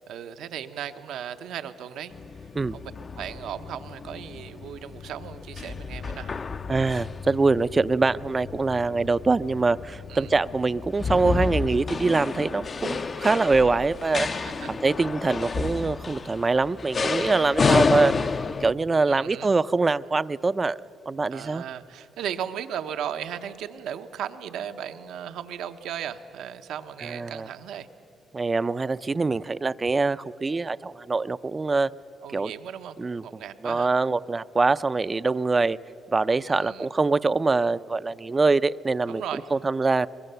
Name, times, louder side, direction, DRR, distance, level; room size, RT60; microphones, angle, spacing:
voice 1, 0.1-2.1 2.7-6.3 10.1-10.3 14.3-14.7 19.1-19.5 21.3-27.9 32.2-33.0 33.2-33.9 36.5-36.9 39.1-39.5, right 9 dB, 80° right, 9 dB, 0.8 m, -36 dB
sound 1, 2.1-18.7, left 4 dB, 40° left, 0.5 m, -30 dB
voice 2, 6.7-14.3 14.7-18.3 18.6-20.8 21.1-21.6 27.0-27.5 28.3-31.9 32.3-32.5 33.0-33.2 33.6-35.8 36.1-39.2 39.5-40.1, right 3 dB, 25° right, 16 dB, 0.4 m, -24 dB
23.0 x 21.5 x 6.8 m, 3.0 s
cardioid pair, 90°, 0 cm